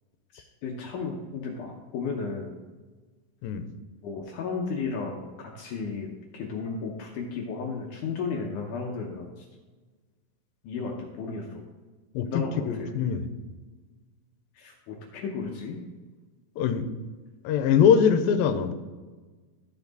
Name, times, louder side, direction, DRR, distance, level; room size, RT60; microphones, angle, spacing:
voice 1, 0.3-2.6 4.0-6.1 6.3-9.5 10.6-11.6 12.3-12.9 14.6-15.8, left 4 dB, 70° left, 0 dB, 2.2 m, -34 dB
voice 2, 12.2-13.3 16.6-16.9 17.4-18.7, left 7 dB, 85° left, 9 dB, 2.5 m, -22 dB
12.5 x 5.8 x 4.0 m, 1.3 s
omnidirectional pair, 4.1 m